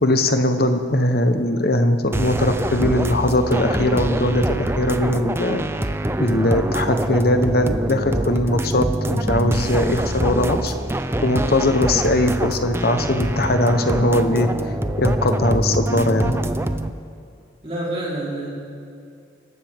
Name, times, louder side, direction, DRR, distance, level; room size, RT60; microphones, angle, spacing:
voice 1, 0.0-5.6 6.2-10.7 11.2-14.5 15.0-16.4, left 1 dB, 50° left, 7 dB, 1.0 m, -20 dB
sound 1, 2.1-16.9, right 1 dB, 15° right, 0.4 m, -24 dB
voice 2, 17.6-18.5, right 1 dB, 30° right, -5 dB, 3.9 m, -28 dB
26.0 x 12.5 x 3.6 m, 2.4 s
head